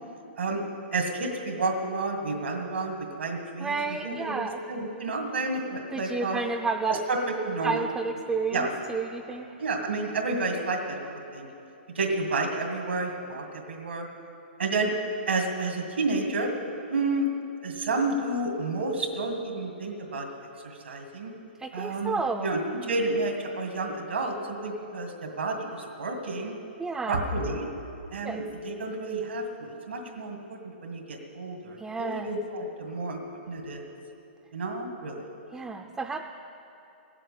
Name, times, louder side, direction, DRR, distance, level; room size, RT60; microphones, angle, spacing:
voice 1, 0.9-3.8 4.0-6.4 6.9-7.8 8.5-8.7 9.6-11.5 11.9-14.1 14.6-14.9 15.3-16.5 16.9-17.3 17.6-20.3 20.6-21.3 21.7-26.5 27.1-27.7 28.1-33.8 34.5-35.2, right 2 dB, 90° right, 2 dB, 2.1 m, -30 dB
voice 2, 3.6-4.6 5.9-7.0 7.6-9.6 21.6-22.5 26.8-27.2 28.2-28.4 31.8-32.3 35.5-36.2, right 4 dB, 10° right, 4 dB, 0.5 m, -31 dB
15.5 x 7.5 x 8.5 m, 2.8 s
hypercardioid pair, 135°, 6 cm